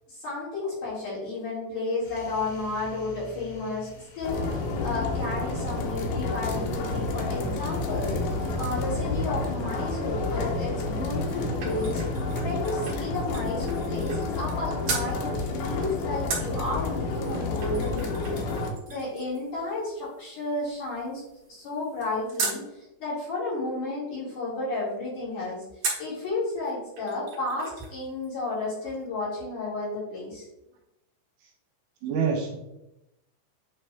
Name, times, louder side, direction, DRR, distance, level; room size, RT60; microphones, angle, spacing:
voice 1, 0.1-12.0 12.4-18.4 18.9-21.2 21.5-25.6 26.0-30.5, left 2 dB, 50° left, -8 dB, 3.5 m, -32 dB
sound 1, 2.0-10.4, left 1 dB, 65° left, 2.3 m, -40 dB
sound 2, 4.2-18.7, left 3 dB, 85° left, 2.0 m, -30 dB
sound 3, 10.9-14.6 14.8-15.1 16.3-22.6 25.8-26.2 26.6-26.7 27.0-28.0 28.2-28.3, right 4 dB, 55° right, 2.0 m, -37 dB
voice 2, 32.0-32.6, right 6 dB, 75° right, 0 dB, 2.9 m, -27 dB
8.4 x 3.4 x 3.4 m, 0.91 s
omnidirectional pair, 5.3 m